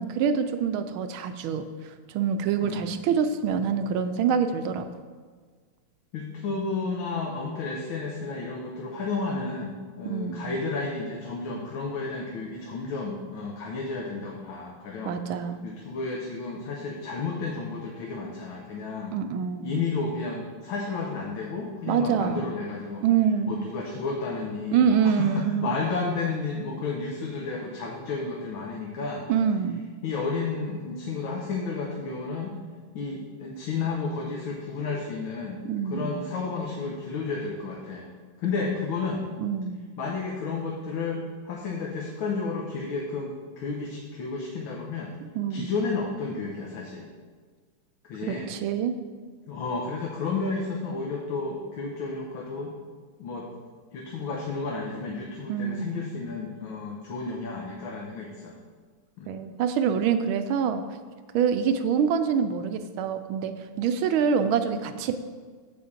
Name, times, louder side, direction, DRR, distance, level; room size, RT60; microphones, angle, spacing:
voice 1, 0.0-4.9 10.0-10.5 15.0-15.7 19.1-19.7 21.9-22.4 23.0-23.6 24.7-25.7 29.3-29.8 35.6-36.2 39.4-39.8 45.3-45.7 48.2-48.9 55.5-56.0 59.3-60.8 61.3-65.1, right 7 dB, 80° right, 9 dB, 1.4 m, -26 dB
voice 2, 6.1-15.1 15.6-19.2 19.6-23.0 23.5-29.2 30.0-32.6 32.9-38.1 38.4-39.3 40.0-45.1 45.5-47.0 48.0-48.5 49.5-52.7 53.2-53.5 53.9-58.6 59.2-59.3, left 4 dB, 75° left, -1 dB, 1.7 m, -32 dB
8.6 x 4.3 x 7.2 m, 1.5 s
omnidirectional pair, 2.3 m